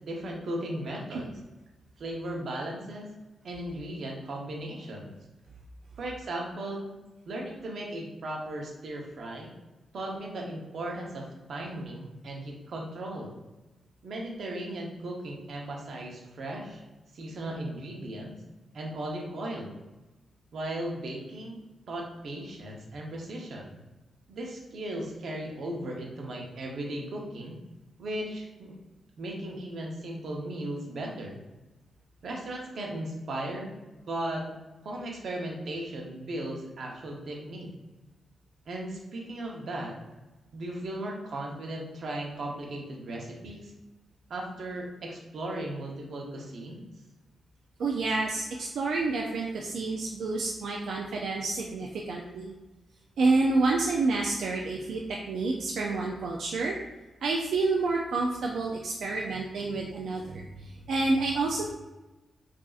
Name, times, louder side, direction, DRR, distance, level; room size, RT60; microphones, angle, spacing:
voice 1, 0.0-1.3 2.0-3.1 3.4-5.1 6.0-6.9 7.3-9.5 9.9-13.3 14.0-16.8 17.1-18.4 18.7-19.7 20.5-23.8 24.3-27.6 28.0-28.8 29.2-31.4 32.2-33.7 34.1-34.5 34.8-37.7 38.7-40.0 40.5-43.7 44.3-46.9, right 1 dB, 60° right, -1 dB, 0.8 m, -36 dB
voice 2, 47.8-52.5 53.2-55.0 55.3-56.8 57.2-61.7, right 3 dB, 80° right, -1 dB, 0.4 m, -28 dB
4.9 x 2.7 x 2.4 m, 1.1 s
wide cardioid pair, 145°, 0 cm